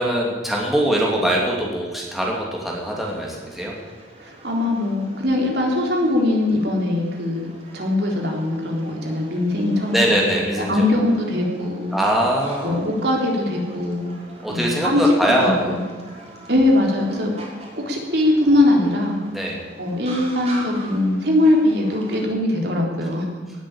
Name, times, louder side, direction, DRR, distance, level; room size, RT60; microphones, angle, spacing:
voice 1, 0.0-3.7 9.9-10.9 11.9-12.8 14.4-15.8 19.3-19.6, right 1 dB, ahead, -3 dB, 2.8 m, -22 dB
sound 1, 2.8-22.3, right 2 dB, 35° right, 3.7 m, -43 dB
voice 2, 4.2-10.1 10.7-12.0 12.6-14.1 14.5-15.0 15.3-15.8 16.5-19.2 19.8-23.3, left 1 dB, 60° right, 0 dB, 3.8 m, -21 dB
18.5 x 8.7 x 8.9 m, 1.5 s
head